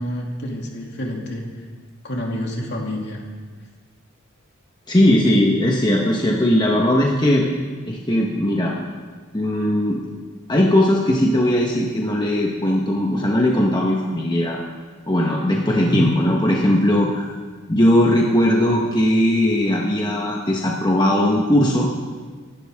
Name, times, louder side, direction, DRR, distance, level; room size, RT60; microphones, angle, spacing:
voice 1, 0.0-1.4 2.0-3.2 15.7-16.0, equal, 55° left, -1 dB, 2.8 m, -28 dB
voice 2, 4.9-7.5 7.9-8.8 9.3-10.0 10.5-14.6 15.1-17.3 17.7-21.9, left 1 dB, 20° left, -2 dB, 1.3 m, -18 dB
26.0 x 12.0 x 3.7 m, 1.5 s
head